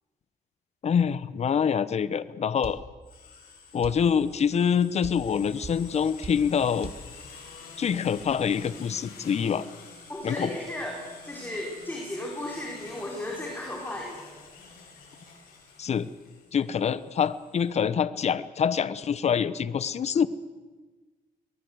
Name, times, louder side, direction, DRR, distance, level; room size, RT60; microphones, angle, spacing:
voice 1, 0.8-2.8 3.7-6.9 7.8-9.7 10.2-10.5 15.8-16.1 16.5-20.3, left 7 dB, 45° left, 16 dB, 1.0 m, -25 dB
sound 1, 2.6-2.8 3.8-4.0 5.0-5.2 5.6-5.8 6.2-6.4 6.8-7.0, right 5 dB, 40° right, 2.1 m, -38 dB
sound 2, 3.0-17.7, left 4 dB, 85° left, 7.9 m, -48 dB
voice 2, 10.1-14.3, left 1 dB, 15° left, -1 dB, 4.6 m, -35 dB
23.5 x 19.0 x 8.1 m, 1.3 s
cardioid pair, 105°, 15 cm